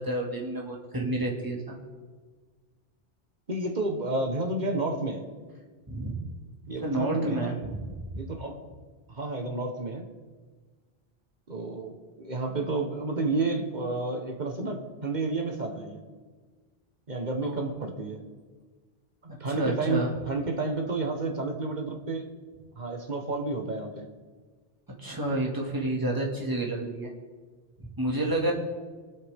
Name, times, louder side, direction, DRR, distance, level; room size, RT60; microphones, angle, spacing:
voice 1, 0.0-1.8 5.9-6.2 6.8-7.8 17.4-17.6 19.4-20.1 25.0-27.1 27.8-28.5, right 1 dB, 20° right, -2 dB, 2.2 m, -30 dB
voice 2, 3.5-5.3 6.7-7.5 8.2-8.6 9.1-10.1 11.5-16.0 17.1-18.2 19.4-22.3 22.8-24.1, right 3 dB, 45° right, 3 dB, 1.5 m, -31 dB
23.5 x 8.1 x 3.6 m, 1.4 s
omnidirectional pair, 1.0 m